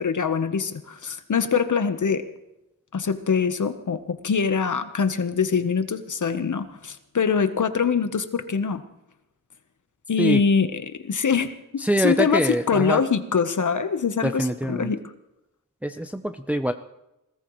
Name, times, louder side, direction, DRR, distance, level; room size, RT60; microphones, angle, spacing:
voice 1, 0.0-2.2 2.9-8.8 10.1-15.0, left 6 dB, 65° left, 10 dB, 1.1 m, -24 dB
voice 2, 11.8-13.0 14.2-14.9 15.8-16.7, equal, 5° right, 8 dB, 0.6 m, -24 dB
21.0 x 19.5 x 3.2 m, 0.90 s
wide cardioid pair, 80°, 33 cm